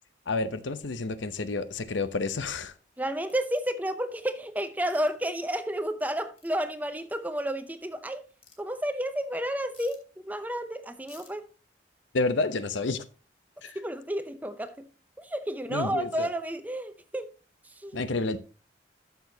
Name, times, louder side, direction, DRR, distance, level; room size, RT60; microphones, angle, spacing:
voice 1, 0.3-2.7 12.1-13.0 13.6-13.8 15.7-16.3 17.9-18.4, left 3 dB, 80° left, 0.7 m, -29 dB
voice 2, 3.0-8.2 8.6-11.5 13.7-14.8 15.2-17.3 17.8-18.0, right 1 dB, 10° right, 0.6 m, -31 dB
sound 1, 3.3-3.6 4.8-5.1 6.4-6.5 8.4-8.6 9.7-10.0 11.1-11.3, left 5 dB, 30° left, 2.3 m, -54 dB
12.0 x 6.8 x 2.8 m
head